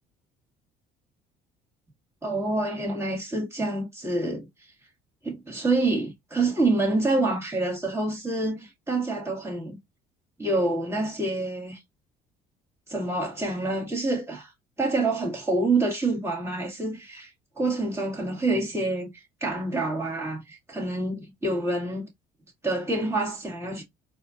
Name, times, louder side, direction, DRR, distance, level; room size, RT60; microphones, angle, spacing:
voice 1, 2.2-4.5 5.2-9.8 10.4-11.8 12.9-14.5 14.8-17.3 17.6-22.1 22.6-23.8, right 2 dB, 15° right, 2.0 m, -27 dB
4.2 x 2.8 x 2.5 m
supercardioid pair, 90°, 18 cm